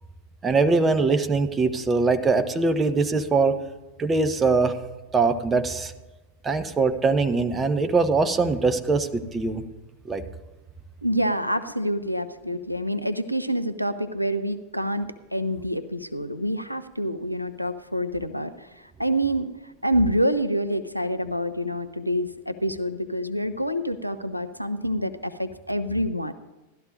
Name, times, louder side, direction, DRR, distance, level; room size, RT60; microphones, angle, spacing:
voice 1, 0.4-3.6 4.0-4.8 5.1-5.9 6.4-9.6 10.0-10.2, right 3 dB, 15° right, 9 dB, 0.8 m, -22 dB
voice 2, 11.0-18.7 19.0-19.5 19.8-26.3, equal, 90° right, 10 dB, 0.5 m, -27 dB
16.5 x 12.5 x 2.6 m, 1.1 s
figure-of-eight pair, 90°, 0 cm